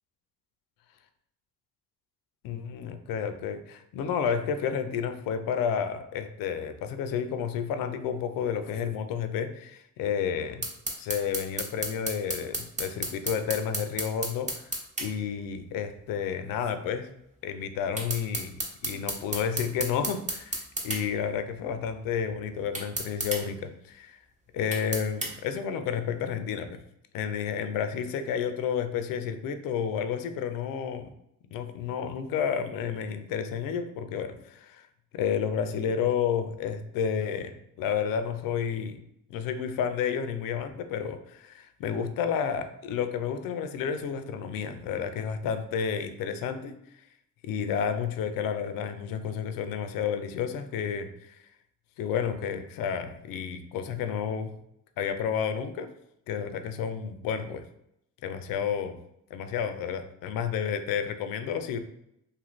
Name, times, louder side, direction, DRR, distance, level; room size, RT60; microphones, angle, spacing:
voice 1, 2.4-10.6 11.0-14.5 15.0-17.1 17.4-18.6 18.8-24.2 24.5-26.8 27.1-31.1 31.5-34.8 35.1-39.0 39.3-46.7 47.4-51.4 52.0-54.5 55.0-55.9 56.3-57.6 58.2-59.0 59.3-61.8, left 7 dB, 70° left, 8 dB, 0.5 m, -31 dB
sound 1, 10.6-15.1 18.0-21.0 22.7-23.4 24.7-25.3, right 1 dB, 20° right, 0.8 m, -32 dB
2.7 x 2.5 x 3.0 m, 0.77 s
supercardioid pair, 65°, 35 cm